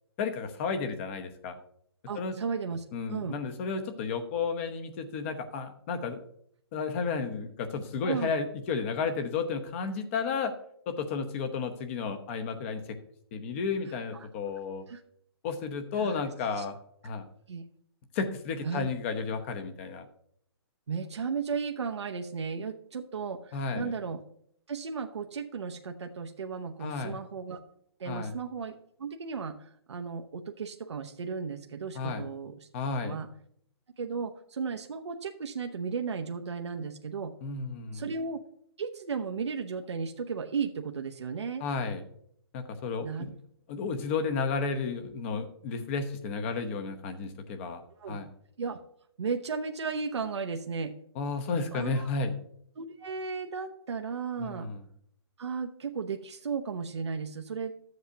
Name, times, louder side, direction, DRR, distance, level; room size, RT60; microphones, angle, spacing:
voice 1, 0.2-1.6 2.1-2.3 2.9-6.2 6.7-10.5 10.9-13.0 13.3-14.8 15.4-16.8 17.0-17.3 18.1-20.1 23.5-23.9 26.8-27.2 28.1-28.3 31.9-32.3 32.7-33.2 37.4-38.0 41.6-42.0 42.5-43.3 43.7-47.8 48.1-48.3 51.2-52.3 54.4-54.8, left 5 dB, 30° left, 8 dB, 0.9 m, -32 dB
voice 2, 2.1-2.8 3.1-3.4 8.0-8.3 14.1-14.3 14.9-15.0 16.0-16.2 16.6-16.7 17.5-17.6 18.6-18.9 20.9-24.2 24.7-27.6 28.0-32.7 33.0-33.3 34.0-37.3 37.9-38.4 38.8-41.7 43.0-43.3 48.0-48.2 48.6-48.8 49.2-50.9 51.7-52.1 52.8-54.7 55.4-57.8, right 5 dB, 85° right, 4 dB, 0.8 m, -35 dB
13.5 x 7.8 x 2.8 m, 0.69 s
hypercardioid pair, 160°, 14 cm